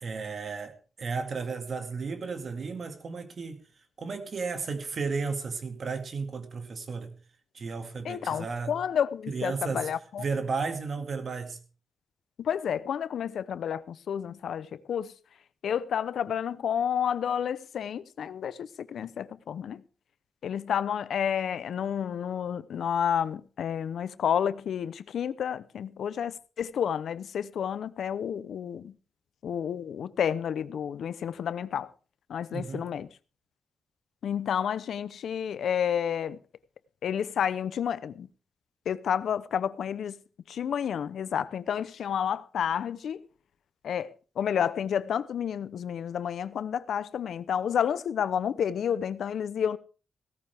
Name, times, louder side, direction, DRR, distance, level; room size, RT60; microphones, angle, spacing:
voice 1, 0.0-3.6 4.0-7.2 7.5-8.8 9.3-9.9 10.2-11.6 32.5-32.9, right 4 dB, 60° right, 2.1 m, -34 dB
voice 2, 8.0-10.2 12.4-15.1 15.6-19.8 20.4-28.9 29.4-31.9 32.3-33.1 34.2-36.4 37.0-38.3 38.9-40.2 40.5-43.3 43.8-49.8, left 8 dB, 85° left, 0.7 m, -30 dB
16.5 x 13.5 x 3.5 m
cardioid pair, 80°, 0 cm